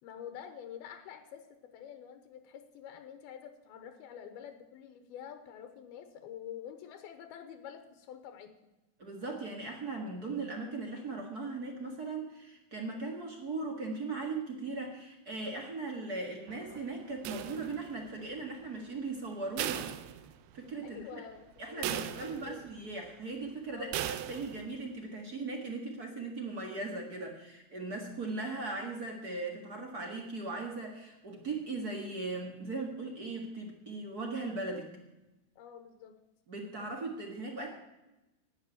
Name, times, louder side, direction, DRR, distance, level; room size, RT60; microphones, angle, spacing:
voice 1, 0.0-8.5 20.8-22.6 23.7-24.1 35.6-36.2, left 9 dB, 85° left, 7 dB, 3.0 m, -47 dB
voice 2, 9.0-19.9 20.5-21.2 21.6-23.9 24.3-34.9 36.5-37.8, right 3 dB, 40° right, 1 dB, 1.4 m, -38 dB
Thunder, 16.5-19.5, right 4 dB, 60° right, 2.7 m, -58 dB
sound 1, 17.2-18.1 19.6-20.7 21.1-21.2 21.8-22.7 23.9-24.7, right 12 dB, 90° right, 2.7 m, -37 dB
11.5 x 9.5 x 8.6 m, 0.99 s
omnidirectional pair, 4.4 m